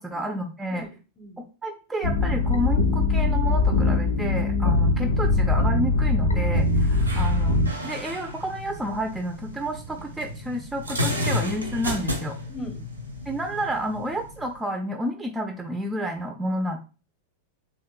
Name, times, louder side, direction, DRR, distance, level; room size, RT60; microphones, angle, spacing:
voice 1, 0.0-0.8 1.6-7.6 7.8-12.4 13.3-16.8, right 1 dB, 10° right, 3 dB, 0.3 m, -30 dB
voice 2, 0.8-1.4 12.5-12.8, left 1 dB, 25° left, 5 dB, 0.7 m, -40 dB
sound 1, 2.0-7.7, left 3 dB, 75° left, 0.6 m, -21 dB
sound 2, 6.5-14.6, left 1 dB, 80° right, 0.6 m, -33 dB
3.0 x 2.7 x 2.3 m, 0.34 s
figure-of-eight pair, 90°, 0 cm